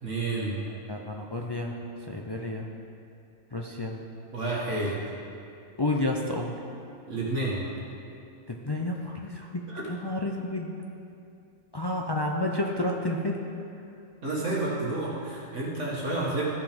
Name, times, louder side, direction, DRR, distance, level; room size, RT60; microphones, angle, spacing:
voice 1, 0.0-0.6 4.3-5.0 7.1-7.6 9.7-9.8 14.2-16.4, right 2 dB, 65° right, -5 dB, 2.0 m, -30 dB
voice 2, 0.9-1.8 2.1-2.7 3.5-4.0 5.8-6.6 8.5-10.7 11.7-13.5, left 1 dB, 35° left, 0 dB, 0.3 m, -30 dB
14.5 x 6.0 x 5.1 m, 2.6 s
omnidirectional pair, 1.4 m